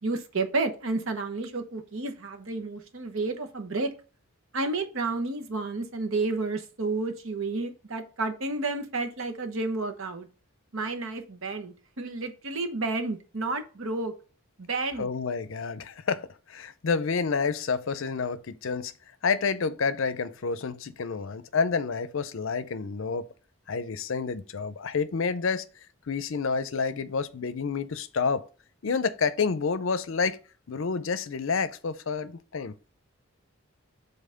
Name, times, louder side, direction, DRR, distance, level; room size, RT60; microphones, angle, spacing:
voice 1, 0.0-3.9 4.5-10.3 10.7-14.1 14.6-15.1, right 3 dB, 70° right, 1.0 m, -31 dB
voice 2, 15.0-18.9 19.2-23.3 23.7-25.6 26.1-28.4 28.8-30.4 30.7-32.7, left 5 dB, 65° left, 0.5 m, -29 dB
5.7 x 3.9 x 5.0 m
head